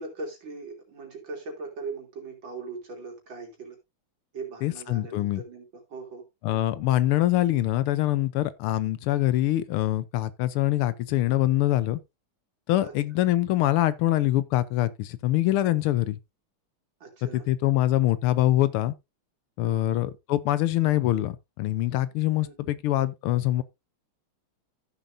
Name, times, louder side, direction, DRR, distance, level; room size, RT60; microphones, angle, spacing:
voice 1, 0.0-3.8 4.3-6.2 6.5-6.8 12.8-12.9 17.0-17.5 19.6-19.9 22.4-22.7, right 3 dB, 60° right, 3.7 m, -40 dB
voice 2, 4.6-5.4 6.4-12.0 12.7-16.2 17.3-18.9 19.6-23.6, left 14 dB, 80° left, 1.6 m, -24 dB
14.5 x 7.1 x 2.6 m
omnidirectional pair, 2.4 m